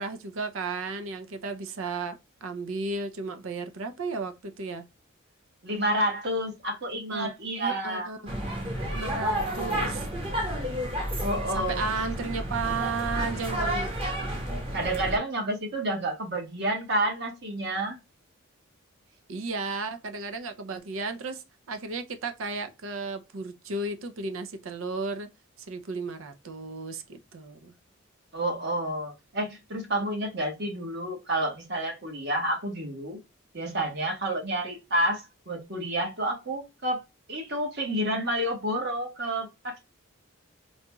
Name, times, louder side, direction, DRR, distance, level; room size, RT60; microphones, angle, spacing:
voice 1, 0.0-4.8 7.0-8.2 8.8-10.1 11.5-13.9 19.3-25.3 25.7-27.7, right 3 dB, 75° right, 0.5 m, -34 dB
voice 2, 5.6-8.1 9.3-9.9 11.2-12.1 14.7-18.0 28.3-33.2 33.5-37.0 37.3-39.8, right 1 dB, 55° right, 1.3 m, -30 dB
sound 1, 8.3-15.2, equal, 25° right, 1.0 m, -31 dB
3.9 x 2.3 x 2.9 m
head